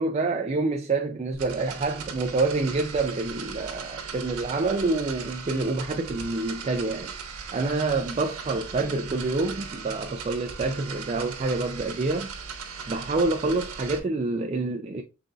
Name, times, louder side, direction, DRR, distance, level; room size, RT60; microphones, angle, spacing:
voice 1, 0.0-7.1 7.5-12.3 12.9-15.0, right 3 dB, 30° right, 0.4 m, -27 dB
sound 1, 1.3-14.0, right 6 dB, 90° right, 1.1 m, -38 dB
5.6 x 3.9 x 2.3 m
head